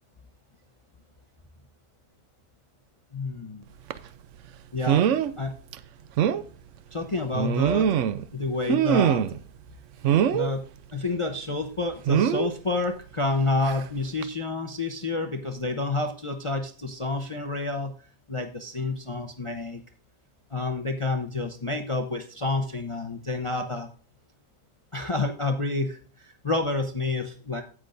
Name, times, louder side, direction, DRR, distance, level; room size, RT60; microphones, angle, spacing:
voice 1, 3.1-3.6 4.7-5.0 5.4-5.5 6.9-7.9 8.3-9.2 10.3-10.6 10.9-17.9 18.3-19.8 20.5-23.9 24.9-27.6, left 3 dB, 55° left, 5 dB, 0.3 m, -29 dB
sound 1, 3.9-4.1 4.9-5.3 5.7-5.8 6.2-6.4 7.3-8.3 8.7-9.4 10.0-10.5 12.1-12.5 13.6-13.8 14.2-14.3, right 9 dB, 70° right, 0.7 m, -22 dB
16.5 x 6.1 x 2.5 m, 0.41 s
omnidirectional pair, 1.8 m